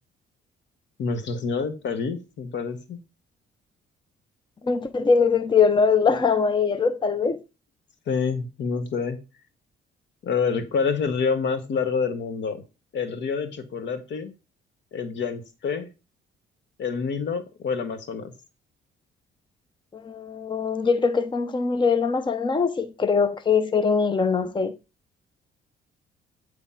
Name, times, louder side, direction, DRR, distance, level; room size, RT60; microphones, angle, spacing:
voice 1, 1.0-3.0 7.2-7.3 8.1-9.2 10.2-12.6 12.9-14.3 14.9-15.9 16.8-18.3, left 5 dB, 65° left, 1.3 m, -27 dB
voice 2, 4.6-7.4 19.9-24.7, left 5 dB, 25° left, 0.7 m, -22 dB
8.7 x 3.3 x 5.6 m
cardioid pair, 90°, 20 cm